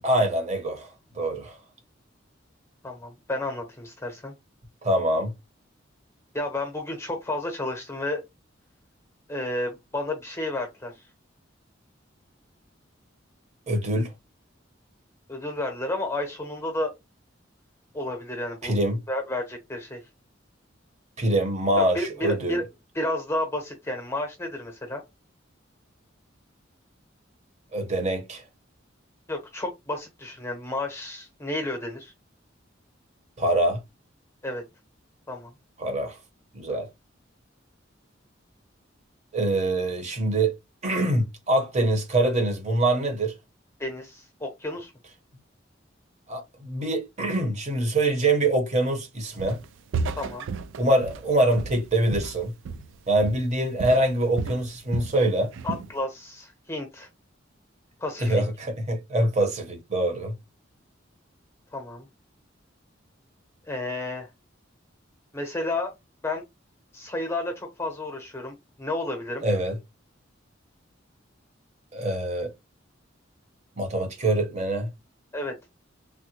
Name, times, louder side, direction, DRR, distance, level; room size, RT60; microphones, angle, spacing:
voice 1, 0.0-0.9 1.1-1.6 4.8-5.3 13.7-14.1 18.6-19.0 21.2-22.6 27.7-28.4 33.4-33.8 35.8-36.2 36.5-36.9 39.3-40.5 40.8-43.3 46.3-49.6 50.8-52.5 53.1-55.5 58.2-60.3 69.4-69.8 71.9-72.5 73.8-74.9, right 1 dB, 35° right, 0.9 m, -24 dB
voice 2, 2.8-4.3 6.3-8.2 9.3-10.9 15.3-16.9 17.9-18.8 19.1-20.0 21.8-22.6 22.9-25.0 29.3-32.1 34.4-34.6 35.3-35.5 43.8-44.9 50.2-50.5 55.6-57.1 58.0-58.4 61.7-62.1 63.7-64.3 65.3-65.9 66.2-66.4 66.9-69.4 75.3-75.5, left 2 dB, 15° left, 0.8 m, -31 dB
Walk footsteps, 49.4-49.7 49.9-53.0 53.2-53.5 53.8-55.2 55.5-55.9, right 4 dB, 70° right, 0.3 m, -33 dB
3.4 x 2.2 x 2.8 m
head